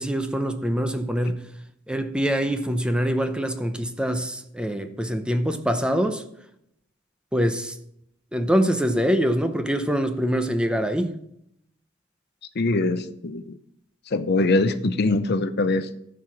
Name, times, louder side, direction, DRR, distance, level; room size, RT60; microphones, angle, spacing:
voice 1, 0.0-1.5 1.9-6.2 7.3-7.8 8.3-11.1, equal, 5° right, 0.7 m, -24 dB
voice 2, 12.6-13.6 14.1-16.0, left 2 dB, 55° left, 0.6 m, -23 dB
14.5 x 4.8 x 5.9 m
head